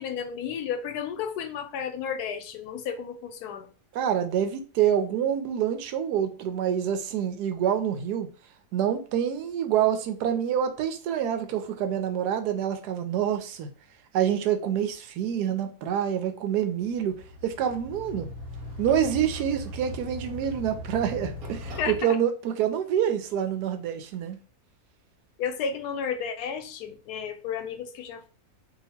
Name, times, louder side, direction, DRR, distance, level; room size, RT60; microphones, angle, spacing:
voice 1, 0.0-3.7 21.8-22.2 25.4-28.3, left 7 dB, 80° left, 1.1 m, -32 dB
voice 2, 3.9-8.3 8.7-13.7 14.1-18.3 18.8-24.4, right 9 dB, 90° right, 1.2 m, -27 dB
sound 1, 16.8-22.0, left 1 dB, 70° right, 1.4 m, -39 dB
2.8 x 2.6 x 4.2 m
omnidirectional pair, 1.7 m